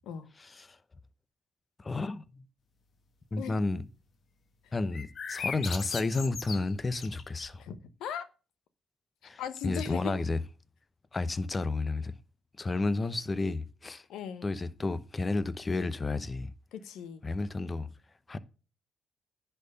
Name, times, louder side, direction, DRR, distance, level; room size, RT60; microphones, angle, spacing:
voice 1, 0.4-0.8 1.8-2.4 3.3-3.9 4.7-7.6 9.2-10.4 11.1-12.1 12.6-14.0 14.4-16.5 17.2-17.9 18.3-18.4, left 3 dB, 30° left, 0.8 m, -32 dB
voice 2, 3.4-3.7 4.6-4.7 7.6-8.3 9.2-10.2 14.1-14.5 16.7-17.2, left 8 dB, 85° left, 1.0 m, -39 dB
sound 1, 4.9-7.6, left 5 dB, 55° left, 1.2 m, -38 dB
10.5 x 4.5 x 6.7 m
cardioid pair, 80°, 0 cm